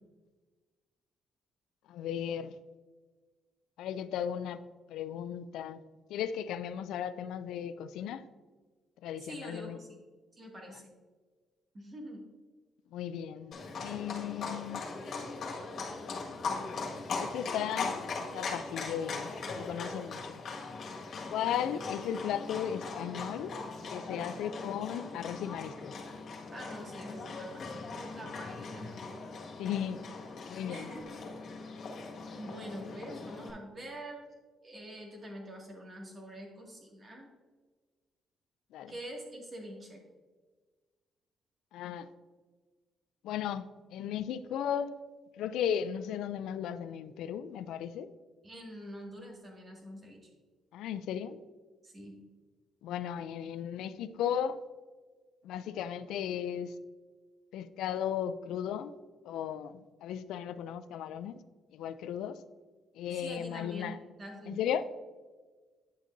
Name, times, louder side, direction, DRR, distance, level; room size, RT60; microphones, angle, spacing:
voice 1, 1.9-2.5 3.8-4.6 4.9-5.8 6.1-8.2 9.0-9.8 12.9-14.8 17.2-18.0 18.3-20.4 21.3-23.5 23.9-26.0 29.6-30.0 30.5-30.9 38.7-38.9 41.7-42.1 43.2-45.0 45.4-48.1 50.7-51.4 52.8-54.6 55.4-56.7 57.5-58.9 59.2-61.4 61.7-62.4 62.9-64.0 64.5-64.8, left 9 dB, 85° left, 0.3 m, -36 dB
voice 2, 9.2-10.0 10.3-10.9 11.7-12.2 26.5-29.0 30.7-31.2 32.3-34.3 34.6-37.3 38.9-40.0 48.4-50.3 51.8-52.2 63.1-64.6, equal, 35° right, 2.0 m, -45 dB
Livestock farm animals working animals, 13.5-33.5, left 4 dB, 60° left, 1.7 m, -40 dB
9.4 x 6.4 x 2.6 m
cardioid pair, 90°, 0 cm